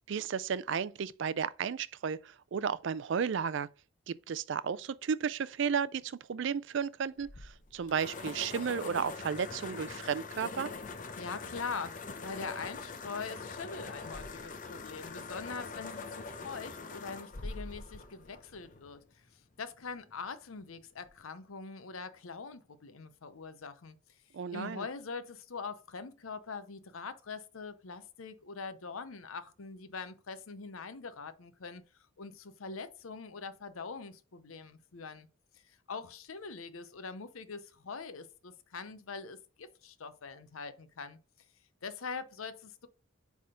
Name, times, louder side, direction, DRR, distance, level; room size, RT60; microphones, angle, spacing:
voice 1, 0.1-3.7 4.1-10.7 24.3-24.9, right 6 dB, 60° right, 0.4 m, -33 dB
sound 1, 7.2-19.0, left 4 dB, 40° left, 0.7 m, -43 dB
voice 2, 11.2-24.0 24.5-31.8 32.2-35.3 35.5-41.2 41.8-42.9, left 4 dB, 85° left, 0.7 m, -43 dB
8.5 x 3.6 x 3.7 m
head